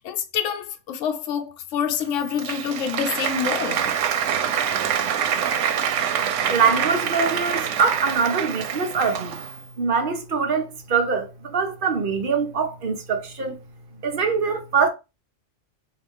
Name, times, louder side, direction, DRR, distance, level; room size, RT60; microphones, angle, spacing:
voice 1, 0.0-3.8, left 7 dB, 85° left, 0.9 m, -27 dB
Applause, 2.0-9.6, right 8 dB, 85° right, 0.9 m, -26 dB
voice 2, 6.5-9.4 9.8-13.6 14.0-14.9, right 5 dB, 55° right, 0.8 m, -23 dB
4.1 x 2.4 x 3.5 m
omnidirectional pair, 1.2 m